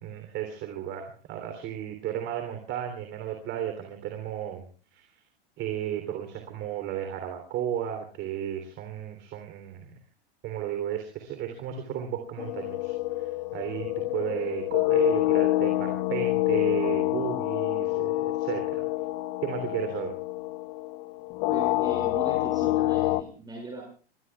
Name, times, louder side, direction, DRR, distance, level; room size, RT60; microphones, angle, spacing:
voice 1, 0.0-4.7 4.9-5.0 5.6-9.9 10.4-18.8 19.4-20.1, right 10 dB, 40° right, 5 dB, 3.3 m, -34 dB
sound 1, 12.4-23.2, left 18 dB, 45° left, 0.9 m, -27 dB
voice 2, 21.5-23.8, right 2 dB, 15° right, 0 dB, 6.1 m, -39 dB
27.5 x 21.5 x 2.4 m, 0.37 s
hypercardioid pair, 125°, 30 cm